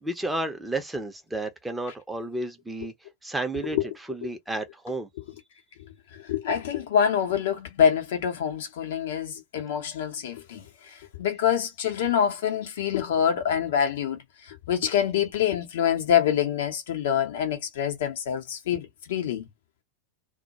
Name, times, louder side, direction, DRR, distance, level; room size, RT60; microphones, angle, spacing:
voice 1, 0.0-2.9 3.2-3.8 4.1-5.1, right 2 dB, 5° right, 0.6 m, -31 dB
voice 2, 5.8-19.5, left 8 dB, 55° left, 0.8 m, -26 dB
2.2 x 2.1 x 2.8 m
figure-of-eight pair, 90°, 0 cm